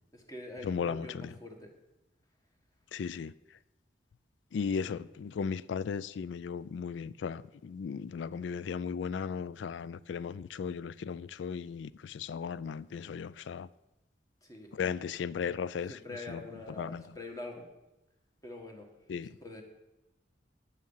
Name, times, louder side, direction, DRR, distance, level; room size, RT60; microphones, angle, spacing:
voice 1, 0.1-1.7 4.8-4.9 14.4-14.7 15.9-17.7 18.4-18.9 19.2-19.6, left 2 dB, 20° left, 1.6 m, -45 dB
voice 2, 0.6-1.1 2.9-3.3 4.5-13.7 14.7-15.9 16.3-16.4 16.8-17.0 19.1-19.4, left 6 dB, 80° left, 0.3 m, -36 dB
10.0 x 8.9 x 5.5 m
head